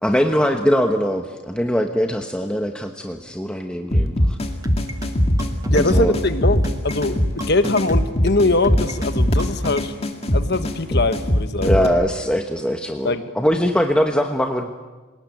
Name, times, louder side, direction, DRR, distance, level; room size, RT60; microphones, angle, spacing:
voice 1, 0.0-4.4 5.7-6.1 11.6-14.7, equal, 5° left, 4 dB, 1.1 m, -21 dB
sound 1, 3.9-11.9, equal, 30° left, 2.0 m, -21 dB
sound 2, 4.6-9.9, right 1 dB, 15° right, 1.2 m, -33 dB
voice 2, 5.7-10.0 10.3-11.9 13.0-13.4, left 2 dB, 50° left, 10 dB, 1.4 m, -22 dB
27.5 x 18.5 x 9.1 m, 1.3 s
head